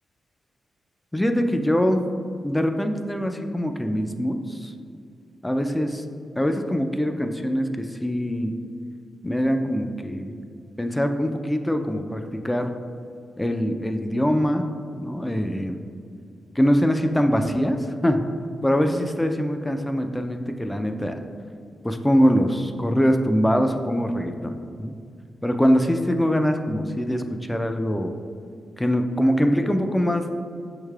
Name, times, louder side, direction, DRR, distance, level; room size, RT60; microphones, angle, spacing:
voice 1, 1.1-2.0 2.4-4.7 5.4-6.0 6.4-8.6 9.2-10.3 10.8-12.7 13.4-14.6 15.0-15.8 16.6-17.8 18.0-18.2 18.6-21.2 21.8-24.9 25.4-27.2 27.5-28.1 28.8-30.3, equal, 10° left, 6 dB, 0.4 m, -23 dB
6.3 x 3.2 x 2.3 m, 2.4 s
cardioid pair, 60°, 0 cm